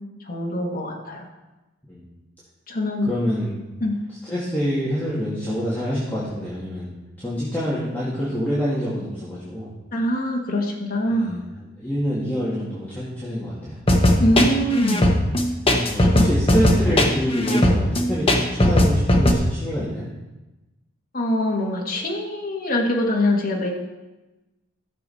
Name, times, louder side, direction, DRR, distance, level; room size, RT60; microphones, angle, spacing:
voice 1, 0.2-1.3 2.7-3.1 3.8-4.0 9.9-11.4 14.2-15.0 16.0-16.3 21.1-23.7, left 1 dB, 45° left, -1 dB, 1.6 m, -23 dB
voice 2, 3.0-3.5 4.1-9.7 11.1-13.8 15.7-20.1, equal, 10° left, -9 dB, 2.2 m, -27 dB
sound 1, 13.9-19.3, left 1 dB, 25° left, 1.1 m, -17 dB
15.0 x 6.9 x 4.2 m, 1.1 s
head